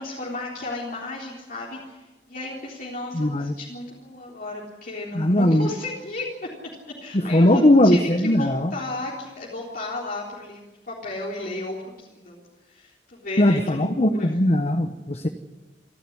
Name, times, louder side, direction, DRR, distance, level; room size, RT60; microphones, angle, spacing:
voice 1, 0.0-6.5 7.0-14.4, left 2 dB, 55° left, -5 dB, 3.9 m, -34 dB
voice 2, 3.1-3.5 5.1-5.7 7.3-8.7 13.4-15.3, left 1 dB, 35° left, 7 dB, 1.1 m, -19 dB
28.5 x 12.0 x 9.8 m, 1.1 s
head